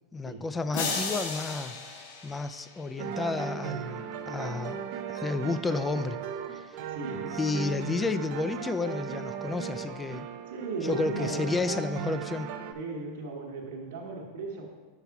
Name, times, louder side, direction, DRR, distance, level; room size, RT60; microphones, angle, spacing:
voice 1, 0.1-1.8 2.2-4.8 5.1-6.2 6.5-6.8 7.4-10.3 10.8-12.5, left 3 dB, 15° left, 12 dB, 0.3 m, -31 dB
sound 1, 0.7-3.1, left 4 dB, 70° left, 1.2 m, -35 dB
sound 2, 3.0-12.7, right 7 dB, 55° right, 0.5 m, -37 dB
voice 2, 6.9-7.3 10.5-11.5 12.7-14.7, right 3 dB, 75° right, -5 dB, 1.1 m, -36 dB
5.7 x 5.7 x 4.6 m, 1.5 s
supercardioid pair, 130°, 0 cm